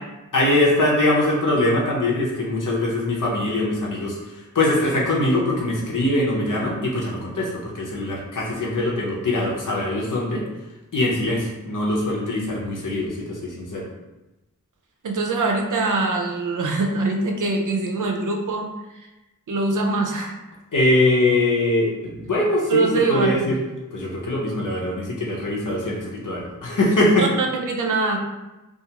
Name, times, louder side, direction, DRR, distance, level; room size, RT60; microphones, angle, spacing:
voice 1, 0.3-10.4 10.9-13.9 20.7-23.6 23.9-27.3, left 1 dB, 75° left, -4 dB, 0.7 m, -22 dB
voice 2, 15.0-18.7 19.5-20.4 22.7-23.4 27.2-28.2, right 3 dB, 70° right, 1 dB, 0.5 m, -23 dB
2.4 x 2.3 x 2.8 m, 1.0 s
wide cardioid pair, 55°, 32 cm